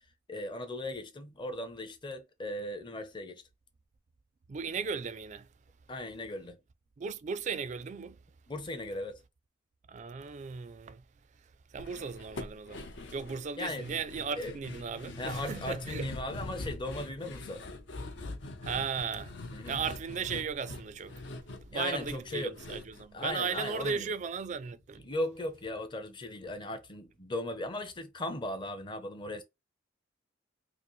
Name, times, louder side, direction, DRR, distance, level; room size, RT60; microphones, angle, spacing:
voice 1, 0.3-3.4 5.9-6.6 8.5-9.2 13.6-13.8 14.4-14.5 15.2-17.7 19.5-19.8 21.7-22.5 23.1-24.1 25.0-29.4, left 1 dB, 25° left, 0.7 m, -37 dB
voice 2, 4.5-5.5 7.0-8.2 9.9-11.0 11.7-16.1 18.6-19.4 19.7-21.2 21.6-25.1, right 6 dB, 35° right, 0.3 m, -36 dB
sound 1, 11.8-24.1 24.3-24.4 24.8-24.9, left 2 dB, 65° left, 0.7 m, -43 dB
4.8 x 2.0 x 3.1 m
head